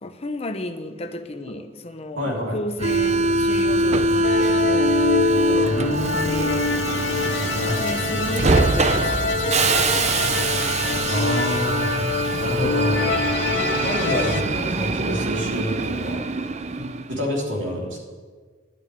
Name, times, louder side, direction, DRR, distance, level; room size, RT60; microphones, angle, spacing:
voice 1, 0.0-5.0 5.3-6.7 7.4-11.4 12.3-12.7 13.5-13.8, left 1 dB, 30° left, 7 dB, 0.9 m, -34 dB
voice 2, 2.2-2.6 5.6-6.4 7.5-7.8 11.1-11.9 12.4-13.1 13.8-16.2 16.7-18.0, equal, 65° right, -2 dB, 3.3 m, -27 dB
Subway metro underground, 2.8-17.1, right 2 dB, 35° right, 0.5 m, -23 dB
sound 1, 4.2-14.4, left 4 dB, 65° left, 0.8 m, -25 dB
11.5 x 6.6 x 9.1 m, 1.5 s
head